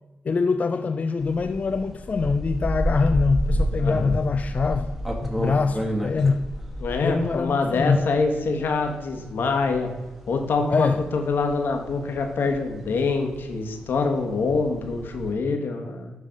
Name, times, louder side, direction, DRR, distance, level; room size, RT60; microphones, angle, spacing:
voice 1, 0.2-4.9 5.2-6.5 6.9-8.0 10.7-11.0, left 4 dB, 45° left, 0.3 m, -24 dB
sound 1, 1.2-15.3, equal, 5° right, 1.4 m, -31 dB
voice 2, 3.8-4.2 6.8-9.9 10.3-10.9 11.1-16.1, left 4 dB, 75° left, 1.2 m, -25 dB
9.5 x 3.3 x 5.0 m
cardioid pair, 70°, 4 cm